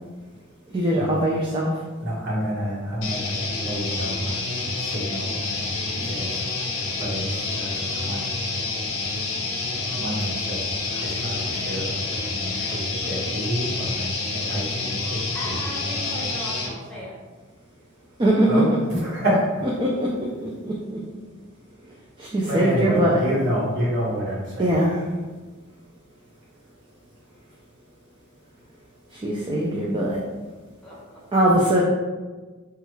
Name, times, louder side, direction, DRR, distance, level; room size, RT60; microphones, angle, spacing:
voice 1, 0.7-1.8 18.2-18.6 19.8-21.0 21.8-21.9 22.2-23.2 24.6-25.0 29.1-30.2 31.3-31.8, right 1 dB, 25° right, -4 dB, 0.3 m, -22 dB
voice 2, 2.0-8.4 9.9-15.5 18.4-18.6 18.9-19.5 22.5-24.7, equal, 55° right, -6 dB, 1.1 m, -29 dB
sound 1, 3.0-16.7, left 3 dB, 85° left, 0.7 m, -28 dB
voice 3, 15.3-17.1 30.8-31.4, equal, 5° left, -7 dB, 0.8 m, -37 dB
3.1 x 2.3 x 3.1 m, 1.3 s
head